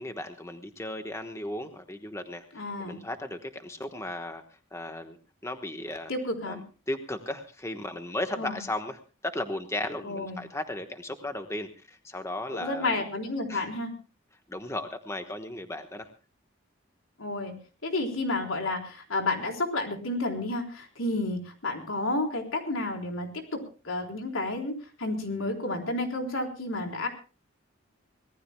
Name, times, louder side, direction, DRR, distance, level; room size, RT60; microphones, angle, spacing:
voice 1, 0.0-5.2 5.4-6.1 6.5-6.6 6.9-13.0 13.5-13.7 14.5-16.1, left 1 dB, 15° left, 7 dB, 1.1 m, -36 dB
voice 2, 2.5-3.0 6.1-6.6 8.4-8.6 10.0-10.4 12.5-13.9 17.2-17.5 17.8-23.6 23.8-27.1, left 2 dB, 85° left, 2 dB, 3.9 m, -31 dB
25.0 x 18.5 x 2.2 m, 0.34 s
head